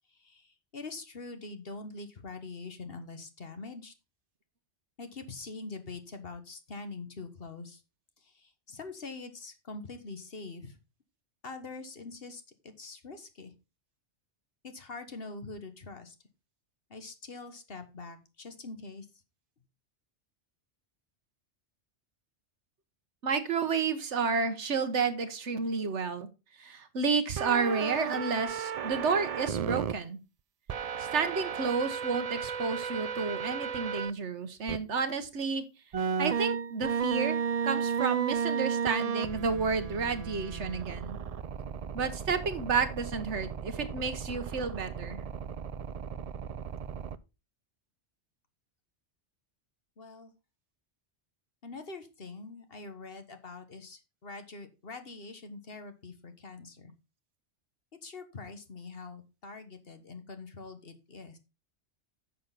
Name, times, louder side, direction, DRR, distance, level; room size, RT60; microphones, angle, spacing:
voice 1, 0.1-3.9 5.0-7.8 8.2-10.8 11.4-13.5 14.6-16.2 16.9-19.1 50.0-50.3 51.6-56.9 58.0-61.4, left 3 dB, 55° left, 8 dB, 1.7 m, -44 dB
voice 2, 23.2-26.3 26.6-30.2 31.0-35.6 36.2-37.4 37.6-41.2 41.9-45.2, right 5 dB, 80° right, 11 dB, 1.5 m, -31 dB
sound 1, 27.4-29.9 30.7-34.1 34.7-34.8 35.9-47.2, right 7 dB, 50° right, 0.4 m, -34 dB
10.0 x 6.7 x 4.0 m, 0.28 s
omnidirectional pair, 1.2 m